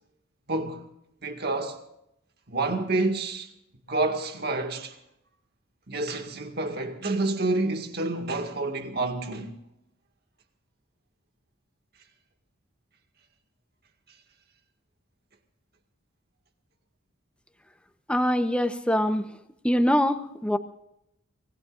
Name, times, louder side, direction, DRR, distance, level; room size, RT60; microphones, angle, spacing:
voice 1, 0.5-0.8 1.2-1.8 2.5-3.5 3.9-5.0 5.9-9.6, right 2 dB, 50° right, 2.0 m, -28 dB
voice 2, 18.1-19.3 19.6-20.6, equal, 5° left, 0.9 m, -23 dB
25.0 x 20.0 x 2.6 m
head